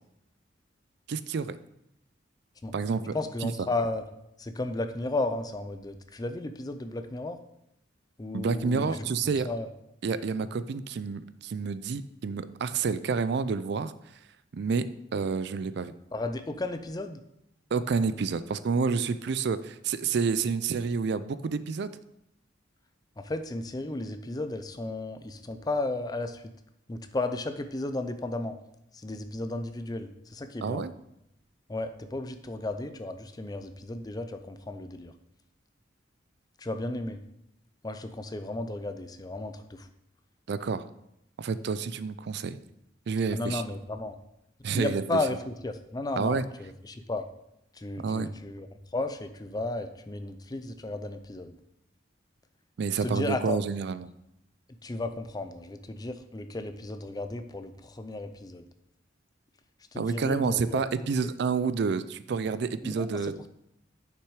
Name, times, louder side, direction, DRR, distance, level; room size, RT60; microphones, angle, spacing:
voice 1, 1.1-1.6 2.7-3.2 3.4-3.5 8.3-9.5 10.0-13.9 14.5-15.9 17.7-21.9 30.6-30.9 40.5-40.9 41.4-42.6 43.1-43.6 44.6-45.2 46.2-46.4 48.0-48.3 52.8-54.1 60.0-63.5, right 5 dB, 60° right, 14 dB, 0.4 m, -29 dB
voice 2, 3.1-4.1 4.4-7.4 8.2-9.1 9.4-9.7 16.1-17.2 23.2-26.5 26.9-28.6 28.9-30.8 31.7-35.1 36.6-37.2 37.8-39.9 43.3-44.1 44.7-47.3 47.7-51.6 53.0-53.6 54.8-58.7 59.9-61.3 62.8-63.5, left 2 dB, 20° left, 9 dB, 0.5 m, -34 dB
6.6 x 6.0 x 4.8 m, 0.81 s
head